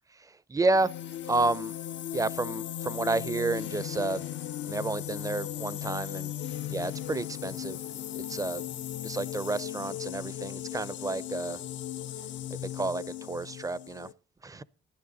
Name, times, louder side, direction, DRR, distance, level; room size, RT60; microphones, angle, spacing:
voice 1, 0.3-0.9 1.3-1.7 2.1-4.2 4.7-6.3 6.7-7.8 8.3-8.6 9.0-11.6 12.6-14.1 14.4-14.6, right 3 dB, 15° right, 0.5 m, -30 dB
sound 1, 0.7-14.1, left 11 dB, 70° left, 0.6 m, -37 dB
14.5 x 11.5 x 4.0 m
cardioid pair, 90°, 20 cm